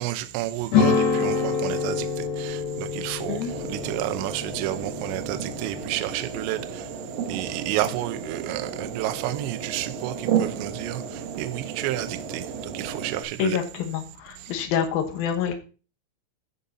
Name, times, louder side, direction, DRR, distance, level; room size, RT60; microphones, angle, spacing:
voice 1, 0.0-2.1 2.4-3.4 3.7-6.8 7.3-11.0 11.4-12.4 12.7-13.6, right 14 dB, 80° right, 2.6 m, -30 dB
sound 1, 0.7-5.9, left 5 dB, 60° left, 3.1 m, -26 dB
sound 2, 3.5-13.2, right 7 dB, 65° right, 2.3 m, -33 dB
voice 2, 13.4-15.5, left 8 dB, 75° left, 2.2 m, -27 dB
16.0 x 5.5 x 2.8 m
omnidirectional pair, 6.0 m